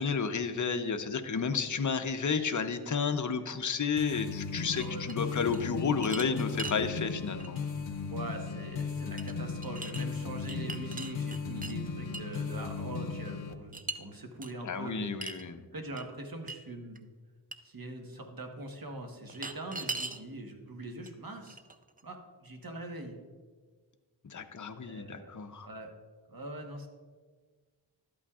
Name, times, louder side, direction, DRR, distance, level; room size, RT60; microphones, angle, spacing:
voice 1, 0.0-7.6 14.6-15.7 24.2-25.7, left 5 dB, 40° left, 7 dB, 0.7 m, -32 dB
sound 1, 4.0-13.5, left 5 dB, 90° left, 0.6 m, -36 dB
sound 2, 4.8-5.6 6.0-6.8 7.4-7.6 9.2-9.3 9.6-10.0 10.4-11.7 12.1-12.4 13.7-14.0 14.4-14.5 15.2-15.5 16.0-16.1 16.5-16.6 17.0-17.1 17.5-17.6 19.3-20.2 21.1-21.2 21.5-22.0, right 3 dB, 20° right, 0.4 m, -40 dB
voice 2, 4.8-5.5 8.1-15.1 15.7-17.0 17.6-21.6 22.0-23.2 24.8-25.3 25.6-25.9 26.3-26.9, right 2 dB, 50° right, 3 dB, 1.3 m, -42 dB
12.5 x 8.5 x 2.4 m, 1.5 s
wide cardioid pair, 45°, 46 cm